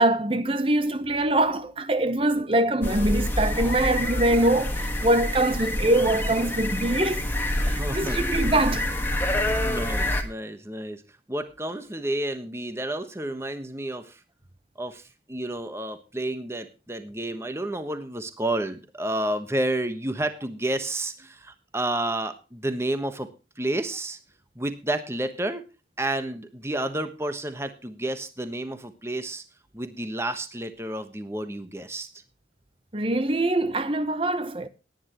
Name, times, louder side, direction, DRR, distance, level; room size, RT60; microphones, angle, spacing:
voice 1, 0.0-7.2 7.6-8.9 32.9-34.7, right 1 dB, 30° right, 0.9 m, -23 dB
sound 1, 2.8-10.2, left 1 dB, 10° left, 1.5 m, -27 dB
voice 2, 7.6-8.3 9.3-11.0 11.3-14.2 14.8-23.3 23.6-24.2 24.5-25.6 26.0-29.4 29.7-32.1, right 1 dB, 15° right, 1.2 m, -30 dB
18.0 x 10.0 x 3.0 m
head